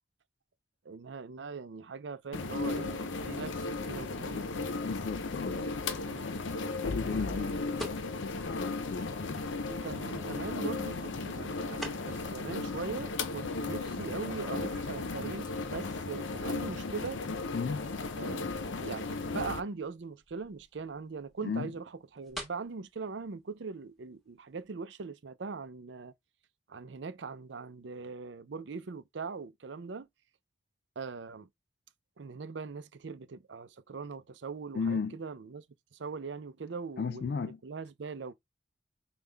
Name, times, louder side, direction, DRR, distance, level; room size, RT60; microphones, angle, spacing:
voice 1, 0.8-4.4 6.0-6.3 7.0-7.6 9.7-17.2 18.2-21.8 22.1-26.1 26.7-30.1 31.0-31.5 32.2-35.6 35.9-38.3, right 4 dB, 75° right, 0.5 m, -41 dB
sound 1, 2.3-19.6, left 3 dB, 90° left, 0.6 m, -35 dB
voice 2, 4.2-4.6 4.8-5.7 6.8-9.5 17.5-17.9 21.4-21.7 34.7-35.2 37.0-37.6, left 5 dB, 60° left, 0.3 m, -35 dB
sound 2, 7.7-24.7, equal, ahead, 1.4 m, -51 dB
5.4 x 2.3 x 3.3 m
head